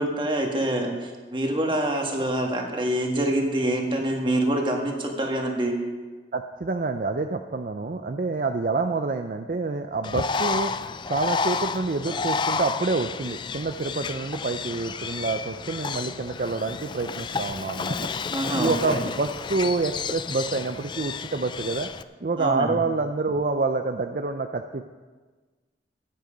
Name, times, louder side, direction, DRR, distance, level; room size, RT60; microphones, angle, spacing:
voice 1, 0.0-5.8 18.3-19.0 22.4-22.8, right 1 dB, 25° right, 2 dB, 1.6 m, -26 dB
voice 2, 6.3-10.7 11.1-18.0 18.5-21.9 22.2-24.9, right 3 dB, 50° right, 7 dB, 0.5 m, -27 dB
Bird, 10.0-22.0, left 5 dB, 25° left, 0.3 m, -31 dB
14.5 x 9.5 x 5.1 m, 1.4 s
head